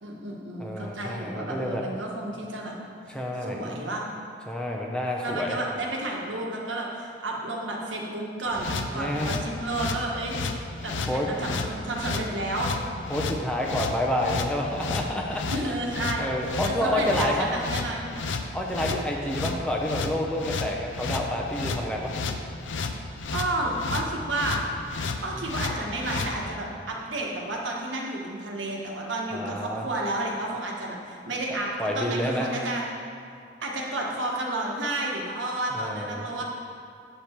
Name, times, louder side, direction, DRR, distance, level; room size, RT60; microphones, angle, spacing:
voice 1, 0.0-2.7 3.4-4.0 5.2-10.3 10.8-12.7 15.5-16.3 16.6-18.3 23.3-24.6 25.2-32.9 33.6-36.4, right 1 dB, 85° right, -1 dB, 1.4 m, -31 dB
voice 2, 0.6-1.8 3.1-3.6 4.5-5.6 8.9-9.3 11.0-11.3 13.1-15.4 16.2-17.5 18.5-22.2 25.3-25.5 29.3-29.9 31.8-32.5 35.7-36.4, left 1 dB, 5° left, -1 dB, 0.6 m, -29 dB
sound 1, 8.5-26.3, left 4 dB, 80° left, 0.6 m, -32 dB
8.3 x 6.8 x 4.5 m, 2.3 s
head